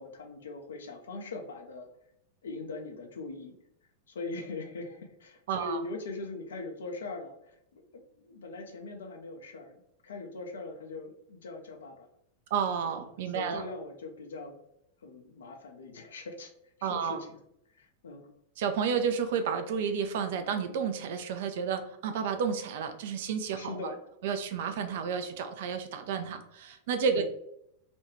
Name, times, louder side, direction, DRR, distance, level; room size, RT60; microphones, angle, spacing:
voice 1, 0.0-1.9 2.4-3.5 4.1-12.1 13.0-14.6 15.0-16.5 16.8-17.4 17.7-18.3 23.5-24.0 27.2-27.3, left 3 dB, 65° left, 3 dB, 0.5 m, -41 dB
voice 2, 5.5-5.8 12.5-13.6 16.8-17.2 18.6-23.7 24.2-27.3, right 6 dB, 55° right, 7 dB, 0.3 m, -31 dB
2.5 x 2.3 x 3.0 m, 0.77 s
figure-of-eight pair, 90°, 0 cm